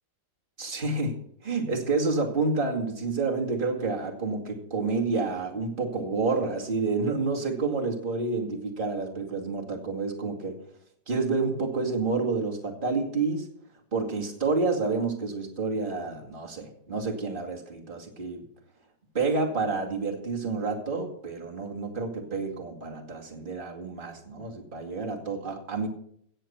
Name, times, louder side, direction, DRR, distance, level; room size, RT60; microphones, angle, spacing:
voice 1, 0.6-1.2 1.4-10.6 11.1-13.5 13.9-18.5 19.1-25.9, right 3 dB, 30° right, 0 dB, 2.4 m, -29 dB
16.0 x 8.0 x 5.8 m, 0.65 s
omnidirectional pair, 2.0 m